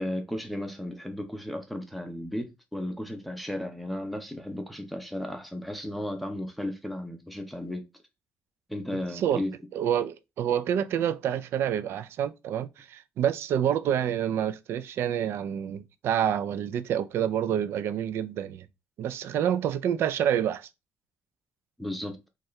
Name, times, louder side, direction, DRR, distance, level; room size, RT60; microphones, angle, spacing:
voice 1, 0.0-7.8 8.7-9.5 21.8-22.3, left 1 dB, ahead, 0.8 m, -34 dB
voice 2, 9.7-18.7 19.0-20.7, right 9 dB, 70° right, 0.4 m, -28 dB
4.3 x 2.5 x 3.1 m
cardioid pair, 105°, 4 cm